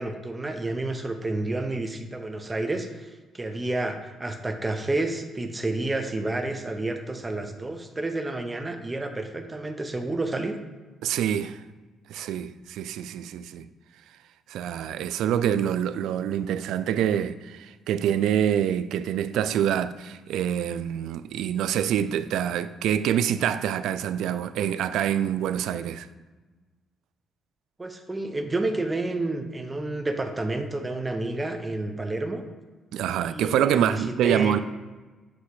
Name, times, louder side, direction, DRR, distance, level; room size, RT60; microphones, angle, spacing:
voice 1, 0.0-3.1 3.3-10.6 27.8-32.4 33.2-34.6, right 2 dB, 20° right, 0.8 m, -30 dB
voice 2, 11.0-11.6 12.1-13.7 14.5-26.1 32.9-34.6, right 10 dB, 85° right, 0.3 m, -26 dB
8.1 x 3.1 x 4.8 m
cardioid pair, 90°, 0 cm